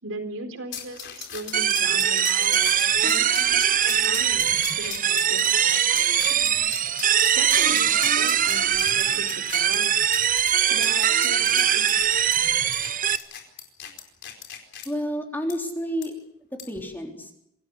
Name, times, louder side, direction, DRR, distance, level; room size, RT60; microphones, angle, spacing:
voice 1, 0.0-3.6 3.8-6.5 7.3-9.9 10.7-12.1, right 2 dB, 70° right, 8 dB, 4.2 m, -39 dB
sound 1, 0.7-14.9 15.5-15.6 16.0-16.1 16.6-16.8, left 9 dB, 55° left, 4.6 m, -38 dB
sound 2, 1.5-13.2, right 9 dB, 40° right, 0.8 m, -22 dB
voice 2, 14.9-16.1 16.5-17.3, equal, 10° left, 1 dB, 3.8 m, -30 dB
25.5 x 18.0 x 8.5 m, 0.79 s
head